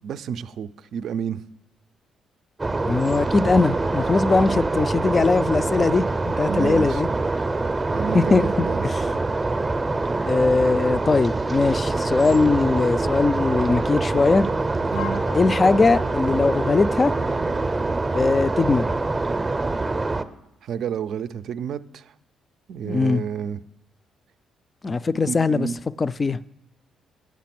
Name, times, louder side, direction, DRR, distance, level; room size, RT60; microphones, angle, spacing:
voice 1, 0.0-1.4 6.5-7.0 7.9-8.9 14.9-15.2 20.6-22.0 22.7-23.6 25.3-25.8, right 7 dB, 70° right, 0.4 m, -30 dB
sound 1, 2.6-20.2, right 3 dB, 20° right, 0.6 m, -25 dB
voice 2, 2.9-7.1 8.1-9.0 10.3-14.4 15.3-17.1 18.1-18.9 22.8-23.2 24.8-25.7 26.0-26.4, left 3 dB, 30° left, 0.3 m, -20 dB
Wind instrument woodwind instrument, 14.9-17.8, left 8 dB, 80° left, 0.6 m, -40 dB
8.4 x 6.8 x 5.9 m
cardioid pair, 90°, 0 cm